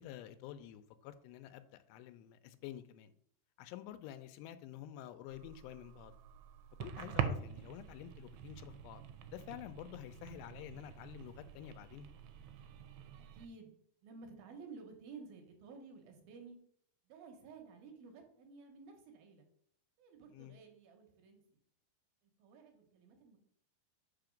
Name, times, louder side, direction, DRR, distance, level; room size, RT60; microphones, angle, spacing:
voice 1, 0.0-3.1 3.6-6.1 6.8-9.0 9.3-12.1 20.3-20.5, left 11 dB, 85° left, 11 dB, 2.8 m, -49 dB
sound 1, 5.3-13.5, right 8 dB, 85° right, 2.7 m, -44 dB
voice 2, 13.3-13.7 14.0-16.6 17.0-19.5 20.0-21.4 22.2-23.4, right 4 dB, 70° right, 3 dB, 2.6 m, -54 dB
6.2 x 5.8 x 5.1 m, 0.65 s
omnidirectional pair, 4.8 m